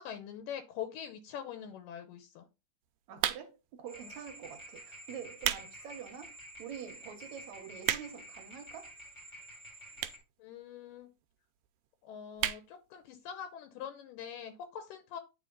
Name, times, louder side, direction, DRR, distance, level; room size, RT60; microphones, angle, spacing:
voice 1, 0.0-2.5 10.4-11.1 12.0-15.2, left 8 dB, 80° left, 2.3 m, -43 dB
voice 2, 3.1-8.9, right 8 dB, 65° right, 2.0 m, -46 dB
sound 1, 3.2-3.7 4.4-4.6 5.2-5.7 6.1-6.2 6.8-6.9 7.1-7.2 7.5-8.3 9.1-9.2 10.0-10.3 10.6-10.7 10.9-11.0 11.2-11.3 11.6-11.9 12.4-12.6 13.0-13.1 13.3-13.4, right 13 dB, 85° right, 2.2 m, -33 dB
sound 2, 3.9-10.2, equal, 10° left, 1.5 m, -50 dB
8.6 x 4.4 x 3.8 m
omnidirectional pair, 3.9 m